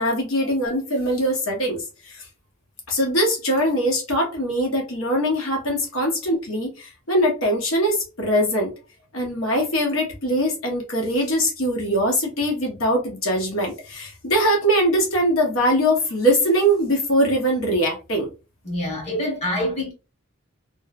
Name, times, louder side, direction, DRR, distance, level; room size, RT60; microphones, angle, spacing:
voice 1, 0.0-2.2 2.9-8.7 9.1-18.3, equal, 85° left, 0.9 m, -22 dB
voice 2, 18.6-19.9, left 1 dB, 30° left, 1.1 m, -26 dB
3.0 x 2.0 x 2.3 m
head